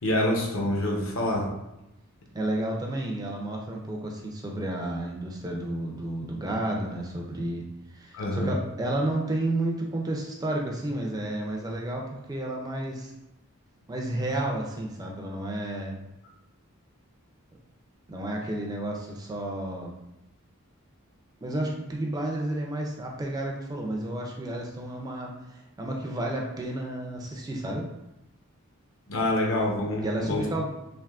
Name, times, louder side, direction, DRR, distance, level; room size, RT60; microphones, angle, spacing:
voice 1, 0.0-1.4 8.1-8.5 29.1-30.4, left 1 dB, 65° left, -1 dB, 0.7 m, -26 dB
voice 2, 2.3-7.6 7.9-13.1 13.9-16.0 18.1-19.9 21.4-27.8 30.0-30.7, right 1 dB, 15° right, 0 dB, 0.3 m, -31 dB
3.4 x 2.5 x 2.4 m, 0.91 s
head